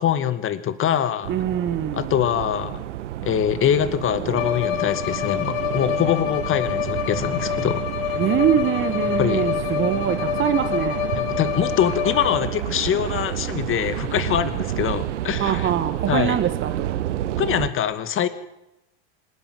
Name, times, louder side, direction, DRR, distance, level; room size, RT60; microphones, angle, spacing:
voice 1, 0.0-1.3 1.9-2.8 3.2-7.8 9.2-9.5 11.1-15.7 16.1-16.4 17.4-18.3, left 10 dB, 35° left, 11 dB, 2.3 m, -24 dB
sound 1, 1.2-17.7, right 13 dB, 80° right, 1.0 m, -30 dB
voice 2, 1.3-2.1 8.2-11.1 15.4-17.0, right 9 dB, 35° right, 9 dB, 2.0 m, -23 dB
Bowed string instrument, 4.3-12.6, left 11 dB, 60° left, 2.9 m, -27 dB
26.5 x 11.0 x 9.4 m, 0.88 s
hypercardioid pair, 100°, 36 cm